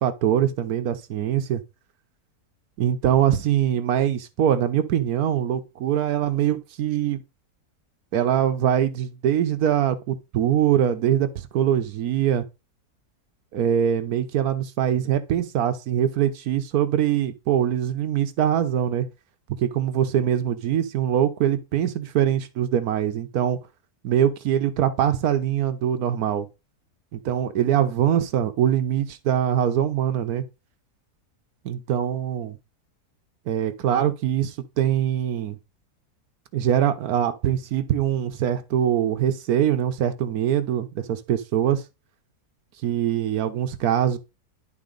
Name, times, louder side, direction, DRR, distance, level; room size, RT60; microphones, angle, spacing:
voice 1, 0.0-1.6 2.8-7.2 8.1-12.4 13.5-19.1 19.6-23.6 24.0-26.5 27.1-30.4 31.6-32.6 33.5-35.6 36.5-41.8 42.8-44.2, right 10 dB, 70° right, 1.3 m, -23 dB
11.0 x 3.9 x 3.9 m
omnidirectional pair, 1.7 m